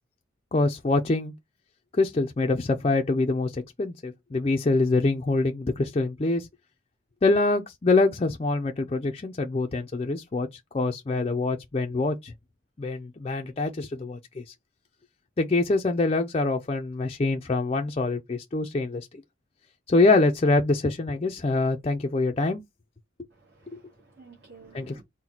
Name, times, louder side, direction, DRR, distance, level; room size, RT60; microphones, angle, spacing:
voice 1, 0.5-1.3 2.0-6.5 7.2-10.5 10.7-12.3 12.8-14.4 15.4-19.1 19.9-22.6 23.7-23.8 24.7-25.0, left 3 dB, 30° left, 0.4 m, -25 dB
voice 2, 23.3-25.0, right 4 dB, 55° right, 1.3 m, -52 dB
4.0 x 2.1 x 4.3 m
head